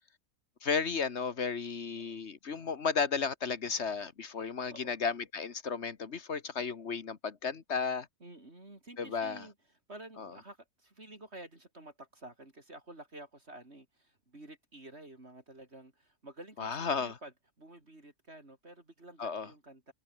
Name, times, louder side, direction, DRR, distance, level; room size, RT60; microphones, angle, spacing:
voice 1, 0.6-8.1 9.0-9.5 10.2-10.3 16.6-17.2 19.2-19.5, left 5 dB, 45° left, 1.6 m, -34 dB
voice 2, 8.2-9.5 9.9-19.9, right 1 dB, 40° right, 4.6 m, -51 dB
omnidirectional pair, 1.6 m